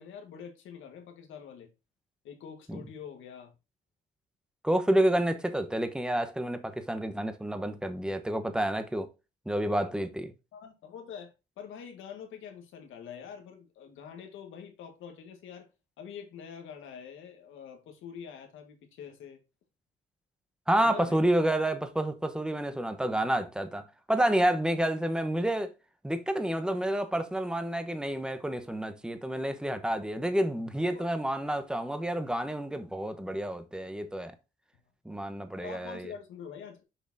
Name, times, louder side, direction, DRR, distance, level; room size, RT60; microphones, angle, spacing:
voice 1, 0.0-1.7 2.2-3.5 10.5-15.7 16.0-19.4 20.8-21.2 30.9-31.1 34.7-34.8 35.6-36.8, left 7 dB, 85° left, 1.6 m, -45 dB
voice 2, 4.6-9.1 9.5-10.3 20.7-23.8 24.1-25.7 26.0-34.3 35.0-36.1, right 1 dB, 5° right, 1.0 m, -29 dB
6.9 x 5.2 x 2.7 m
cardioid pair, 90°, 20 cm